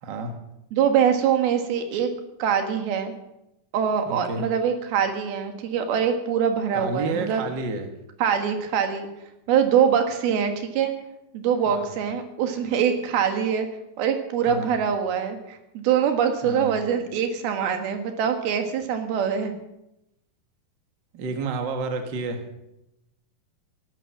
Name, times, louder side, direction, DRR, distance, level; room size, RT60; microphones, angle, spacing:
voice 1, 0.0-0.3 4.1-4.4 6.7-7.9 11.7-11.9 14.5-14.7 16.4-16.8 21.1-22.4, right 3 dB, 45° right, 5 dB, 1.7 m, -30 dB
voice 2, 0.7-2.1 2.4-3.1 3.7-7.4 8.2-9.1 9.5-10.9 11.3-13.7 14.0-19.5, right 8 dB, 90° right, 6 dB, 3.5 m, -23 dB
18.0 x 11.0 x 6.1 m, 0.88 s
omnidirectional pair, 4.2 m